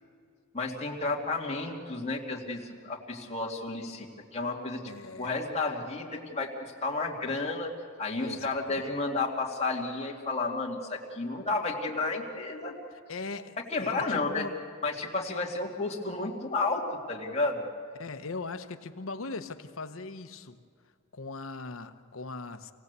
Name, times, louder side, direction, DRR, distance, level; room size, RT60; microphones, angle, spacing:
voice 1, 0.5-4.8 5.2-7.7 8.0-12.7 13.7-14.5 14.8-17.7, left 3 dB, 30° left, 2.5 m, -32 dB
voice 2, 4.9-5.3 8.2-8.8 13.1-14.6 18.0-20.6 21.1-22.7, left 3 dB, 70° left, 1.0 m, -40 dB
27.5 x 17.5 x 8.2 m
head